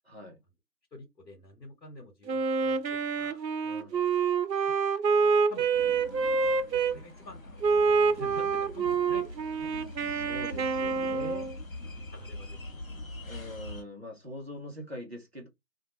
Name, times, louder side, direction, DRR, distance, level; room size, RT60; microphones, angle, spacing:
voice 1, 0.0-0.4 3.6-4.2 10.0-11.5 13.2-15.5, left 1 dB, 40° right, 0.7 m, -43 dB
voice 2, 0.9-3.4 4.6-4.7 5.2-6.1 6.7-9.3 9.6-9.7 11.9-12.6, left 2 dB, 80° left, 1.1 m, -48 dB
Wind instrument woodwind instrument, 2.3-7.0 7.6-11.6, right 5 dB, 85° right, 0.6 m, -27 dB
sound 1, 5.7-13.8, left 1 dB, 55° left, 0.7 m, -43 dB
2.6 x 2.2 x 2.8 m
figure-of-eight pair, 175°, 50 cm